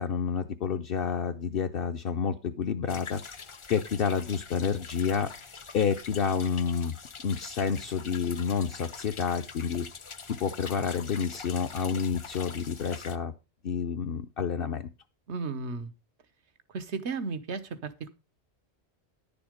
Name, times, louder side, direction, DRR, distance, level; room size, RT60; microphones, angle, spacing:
voice 1, 0.0-3.2 3.7-5.3 5.7-6.9 7.2-9.9 10.3-13.3 13.6-14.9, left 6 dB, 60° left, 5 dB, 0.9 m, -29 dB
sound 1, 2.9-13.2, left 5 dB, 35° left, 0.6 m, -44 dB
voice 2, 15.3-15.9 16.7-18.1, right 4 dB, 85° right, 11 dB, 1.4 m, -34 dB
10.5 x 7.0 x 5.1 m, 0.28 s
omnidirectional pair, 1.1 m